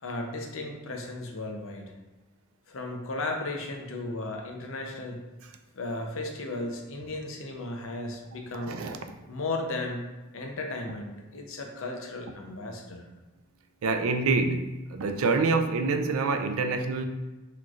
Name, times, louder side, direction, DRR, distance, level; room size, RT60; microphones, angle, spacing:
voice 1, 0.0-1.8 2.7-5.2 5.7-8.8 9.3-10.0 10.3-13.1, left 2 dB, 65° left, 2 dB, 0.7 m, -35 dB
voice 2, 8.6-9.0 13.8-17.0, right 3 dB, 75° right, 6 dB, 0.4 m, -26 dB
5.9 x 3.1 x 2.4 m, 1.1 s
head